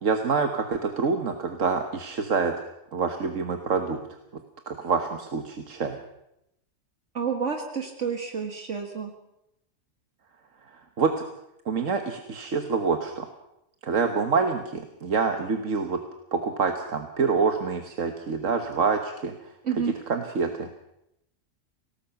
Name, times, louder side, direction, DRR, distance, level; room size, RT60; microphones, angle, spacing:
voice 1, 0.0-2.5 2.9-4.0 4.7-6.0 11.0-11.1 11.6-13.3 13.8-16.0 16.3-19.3 20.1-20.7, right 5 dB, 90° right, 6 dB, 1.7 m, -26 dB
voice 2, 7.1-9.1 19.6-19.9, right 6 dB, 70° right, 4 dB, 2.0 m, -29 dB
25.0 x 18.5 x 5.9 m, 0.83 s
omnidirectional pair, 1.3 m